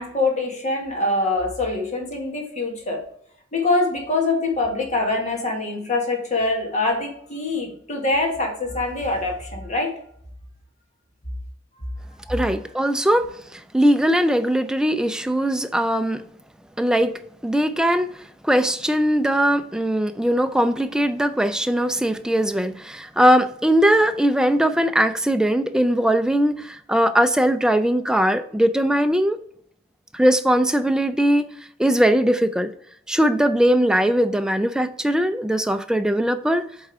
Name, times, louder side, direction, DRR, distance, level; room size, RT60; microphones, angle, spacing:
voice 1, 0.0-3.0 3.5-9.9, left 2 dB, 35° left, 1 dB, 1.6 m, -24 dB
voice 2, 12.3-13.3 13.5-16.2 16.8-17.1 17.4-29.4 30.1-31.5 31.8-32.7 33.1-36.6, equal, 5° right, 9 dB, 0.3 m, -20 dB
8.2 x 3.6 x 4.5 m, 0.67 s
head